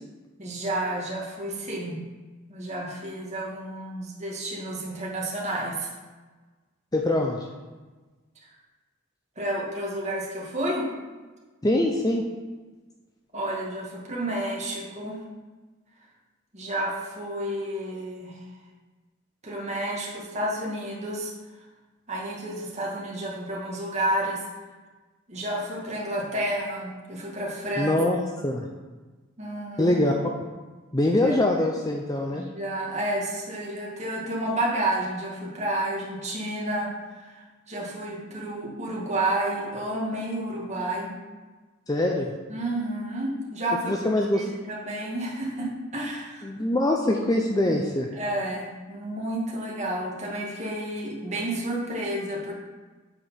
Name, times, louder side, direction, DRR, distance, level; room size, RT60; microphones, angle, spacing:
voice 1, 0.4-2.0 2.5-5.9 9.4-10.9 13.3-15.2 16.5-18.4 19.4-21.3 22.1-24.4 25.3-27.9 29.4-30.0 31.2-31.4 32.3-41.1 42.5-43.9 44.3-46.4 48.1-52.5, right 1 dB, 35° right, -3 dB, 1.9 m, -30 dB
voice 2, 6.9-7.5 11.6-12.2 27.8-28.2 28.4-28.7 29.8-30.1 30.9-32.4 41.9-42.3 43.9-44.5 46.4-48.1, left 1 dB, 20° left, 1 dB, 0.6 m, -23 dB
8.0 x 5.1 x 5.7 m, 1.3 s
head